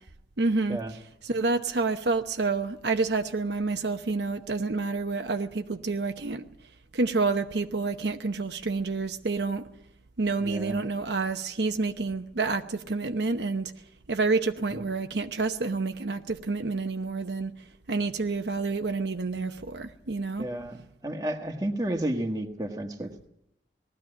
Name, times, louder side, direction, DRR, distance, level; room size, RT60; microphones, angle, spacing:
voice 1, 0.4-1.0 1.2-6.5 6.9-9.7 10.2-13.7 14.1-17.5 17.9-20.5, right 3 dB, 75° right, 1.0 m, -28 dB
voice 2, 10.4-10.8 14.7-14.8 20.4-20.8 21.0-23.3, right 1 dB, 20° right, 1.5 m, -32 dB
19.5 x 14.0 x 9.9 m
head